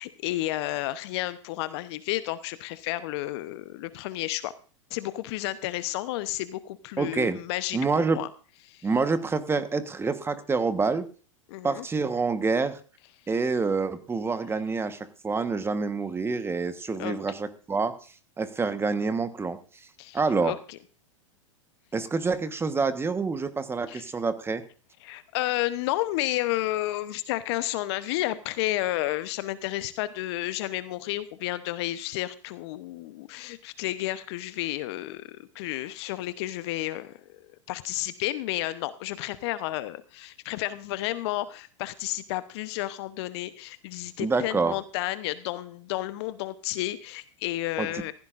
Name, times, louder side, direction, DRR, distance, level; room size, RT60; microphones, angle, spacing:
voice 1, 0.0-4.5 4.9-8.3 8.6-8.9 11.5-11.9 17.0-17.2 20.0-20.8 23.9-24.0 25.0-37.4 37.7-48.1, left 16 dB, 55° left, 14 dB, 0.9 m, -31 dB
voice 2, 7.0-7.4 7.7-8.2 8.8-11.0 11.6-12.8 13.3-17.9 18.4-19.6 20.1-20.5 21.9-24.6 44.2-44.8 47.8-48.1, right 4 dB, 15° right, 11 dB, 1.2 m, -27 dB
15.5 x 15.5 x 2.6 m, 0.39 s
hypercardioid pair, 100°, 17 cm